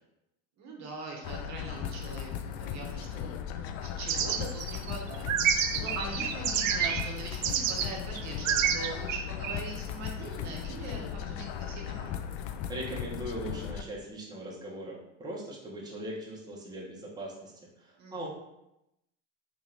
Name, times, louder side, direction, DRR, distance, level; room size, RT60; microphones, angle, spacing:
voice 1, 0.6-12.3 18.0-18.3, right 3 dB, 45° right, 0 dB, 1.1 m, -42 dB
sound 1, 1.2-13.8, left 9 dB, 55° left, 0.4 m, -37 dB
sound 2, 4.1-7.1 7.4-7.9 8.1-9.6, right 8 dB, 85° right, 0.5 m, -28 dB
voice 2, 12.7-18.3, right 1 dB, 10° right, -4 dB, 1.0 m, -40 dB
3.3 x 2.8 x 3.8 m, 0.87 s
hypercardioid pair, 80°, 38 cm